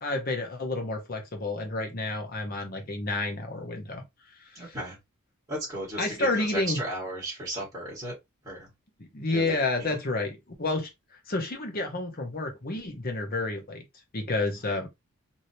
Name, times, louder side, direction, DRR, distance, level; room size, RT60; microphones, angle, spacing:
voice 1, 0.0-4.0 4.6-4.7 6.0-6.8 9.1-10.9 11.3-13.8 14.1-14.9, left 2 dB, 40° left, 0.8 m, -30 dB
voice 2, 4.5-5.0 5.5-8.1 8.4-8.7 9.3-10.0, right 1 dB, 15° right, 1.4 m, -35 dB
3.0 x 2.8 x 2.7 m
head